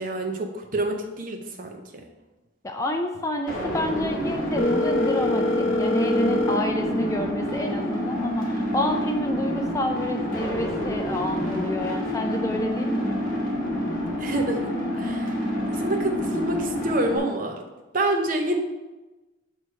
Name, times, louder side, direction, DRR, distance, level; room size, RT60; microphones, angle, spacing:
voice 1, 0.0-1.8 14.2-17.6 17.9-18.6, right 1 dB, 45° right, 3 dB, 0.7 m, -27 dB
voice 2, 2.6-13.2, left 1 dB, 15° left, 4 dB, 0.3 m, -28 dB
sound 1, 3.5-17.2, left 1 dB, 45° left, 1.8 m, -28 dB
Telephone, 4.6-6.6, left 2 dB, 80° left, 0.6 m, -24 dB
7.8 x 3.1 x 4.5 m, 1.1 s
head